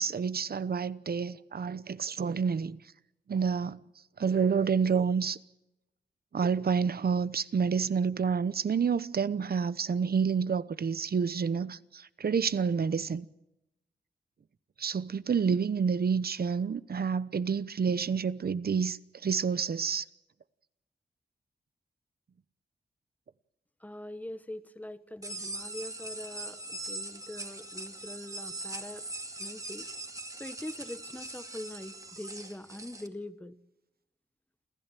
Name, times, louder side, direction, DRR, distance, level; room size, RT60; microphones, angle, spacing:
voice 1, 0.0-2.8 3.3-3.8 4.2-5.4 6.3-13.3 14.8-20.0, right 6 dB, 65° right, 0.9 m, -29 dB
voice 2, 23.8-29.1 29.4-29.9 30.3-33.6, left 1 dB, 10° left, 1.3 m, -43 dB
sound 1, 25.2-33.1, right 1 dB, 20° right, 2.1 m, -41 dB
28.5 x 14.5 x 9.2 m
wide cardioid pair, 85°, 17 cm